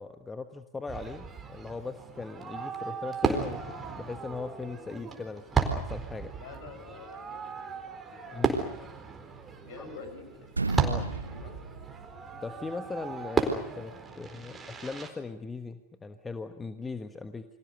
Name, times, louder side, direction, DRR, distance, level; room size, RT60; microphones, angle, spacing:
voice 1, 0.0-6.3 8.3-8.7 9.8-9.9 10.8-11.1 12.4-17.4, left 4 dB, 15° left, 9 dB, 1.4 m, -39 dB
Fireworks, 0.9-15.1, right 5 dB, 15° right, 4.3 m, -34 dB
voice 2, 6.3-8.7 9.6-10.7 11.3-11.6 14.5-14.6, left 4 dB, 50° left, 8 dB, 7.6 m, -48 dB
sound 1, 9.3-10.2 10.5-12.6, right 3 dB, 80° right, 1.0 m, -35 dB
29.5 x 25.0 x 6.8 m, 0.74 s
figure-of-eight pair, 90°, 0 cm